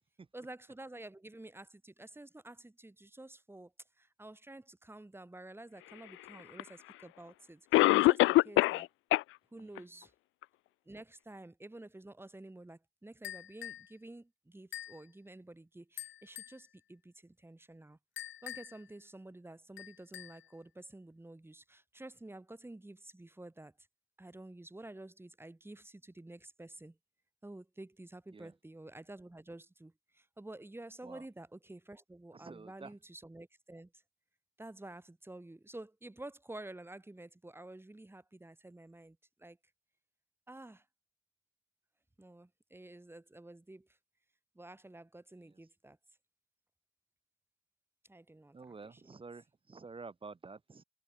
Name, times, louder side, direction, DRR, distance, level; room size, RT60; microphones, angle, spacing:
voice 1, 0.3-8.9 9.5-10.1 10.8-18.0 18.4-23.7 24.2-27.0 27.4-33.9 34.6-39.6 40.5-40.8 42.2-43.9 44.5-46.0 48.0-49.0, right 2 dB, 10° right, 6.7 m, -50 dB
Cough, 6.6-6.7 7.7-8.9 9.1-9.2 9.8-9.9 10.4-10.5, left 19 dB, 90° left, 0.4 m, -23 dB
sound 1, 13.2-13.9 14.7-15.0 16.0-16.6 18.2-18.9 19.8-20.5, left 12 dB, 75° left, 3.2 m, -45 dB
voice 2, 32.3-32.9 48.5-50.8, right 4 dB, 25° right, 1.4 m, -49 dB
cardioid pair, 90°, 20 cm